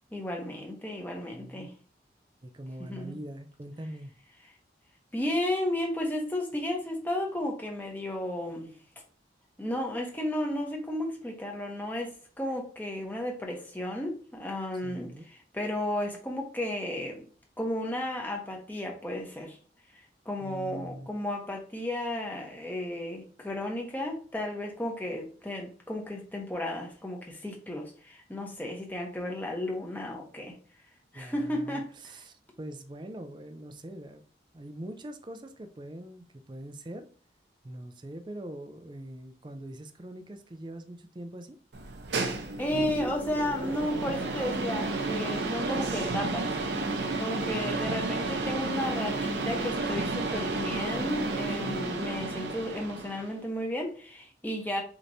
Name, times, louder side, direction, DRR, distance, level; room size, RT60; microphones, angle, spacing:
voice 1, 0.1-1.7 2.8-3.2 5.1-8.7 9.6-17.3 17.6-19.6 20.2-30.5 31.1-31.9 42.6-46.6 47.2-54.8, left 1 dB, 10° left, 0.9 m, -33 dB
voice 2, 1.3-1.7 2.4-4.1 14.8-15.3 20.4-21.1 31.1-34.2 34.5-37.1 37.6-41.6 47.5-48.1 51.6-52.1, right 1 dB, 25° right, 0.4 m, -43 dB
sound 1, 41.7-53.4, right 2 dB, 85° right, 0.8 m, -32 dB
6.5 x 3.0 x 2.7 m
head